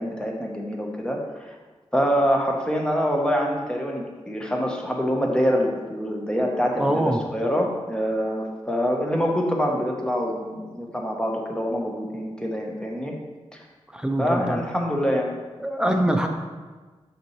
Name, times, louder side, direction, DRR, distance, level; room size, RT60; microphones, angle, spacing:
voice 1, 0.0-1.6 1.9-7.0 7.3-13.1 14.2-15.4 15.9-16.0, equal, 10° left, 0 dB, 0.9 m, -25 dB
voice 2, 6.8-7.2 13.9-14.6 15.6-16.3, right 1 dB, 5° right, 4 dB, 0.5 m, -23 dB
6.1 x 5.7 x 3.1 m, 1.3 s
wide cardioid pair, 120°, 11 cm